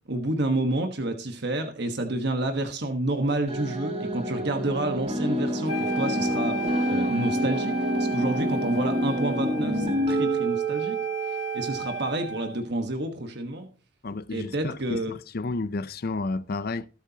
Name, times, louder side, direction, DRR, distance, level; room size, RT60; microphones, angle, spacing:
voice 1, 0.1-11.0 11.3-13.7 14.3-15.1, right 1 dB, 55° right, 1.3 m, -29 dB
sound 1, 3.5-11.9, right 1 dB, 30° right, 4.1 m, -28 dB
Wind instrument woodwind instrument, 5.7-12.6, right 3 dB, 85° left, 1.6 m, -35 dB
voice 2, 14.0-16.9, left 3 dB, 50° left, 0.5 m, -31 dB
20.0 x 8.3 x 2.9 m
head